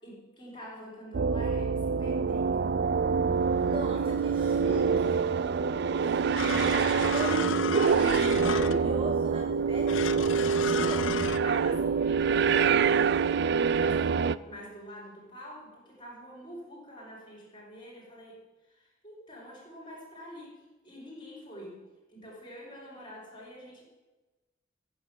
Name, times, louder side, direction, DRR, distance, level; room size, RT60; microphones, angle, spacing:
voice 1, 0.0-2.8 3.9-4.4 6.0-7.7 8.5-8.8 10.8-13.2 13.6-18.4 18.7-21.8 22.1-23.8, equal, 25° left, -6 dB, 5.6 m, -46 dB
sound 1, 1.1-14.4, right 6 dB, 60° right, 0.4 m, -26 dB
voice 2, 3.5-5.3 7.1-7.5 7.8-11.0, right 2 dB, 30° right, 2 dB, 1.4 m, -38 dB
sound 2, 6.4-9.0 9.9-11.4, left 6 dB, 80° left, 0.7 m, -34 dB
14.5 x 7.4 x 9.1 m, 1.1 s
head